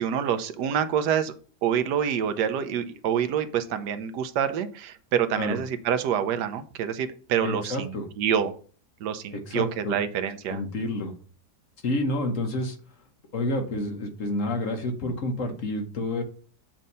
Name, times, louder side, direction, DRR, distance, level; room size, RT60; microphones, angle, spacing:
voice 1, 0.0-1.3 1.6-8.6 9.0-10.6, right 8 dB, 80° right, 11 dB, 1.2 m, -27 dB
voice 2, 7.4-8.1 9.3-10.0 10.5-11.1 11.8-12.8 13.3-16.2, left 1 dB, 55° left, 4 dB, 1.2 m, -29 dB
7.4 x 2.7 x 5.3 m, 0.42 s
omnidirectional pair, 1.8 m